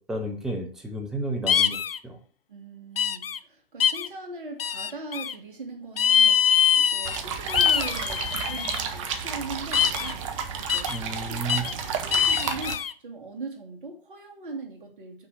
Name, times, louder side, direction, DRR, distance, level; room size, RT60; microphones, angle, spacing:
voice 1, 0.1-1.8 2.0-2.2 10.9-11.6, right 2 dB, ahead, 2 dB, 0.3 m, -31 dB
sound 1, 1.5-2.0 3.0-3.4 3.8-4.1 4.6-5.3 6.0-7.2 7.5-8.8 9.7-10.1 10.7-11.0 11.5-11.7 12.1-12.9, left 8 dB, 75° left, 0.5 m, -23 dB
voice 2, 2.5-15.3, right 3 dB, 60° right, 2 dB, 2.2 m, -40 dB
sound 2, 7.0-12.8, right 7 dB, 35° right, 0.9 m, -32 dB
5.9 x 4.6 x 6.2 m, 0.43 s
figure-of-eight pair, 125°, 29 cm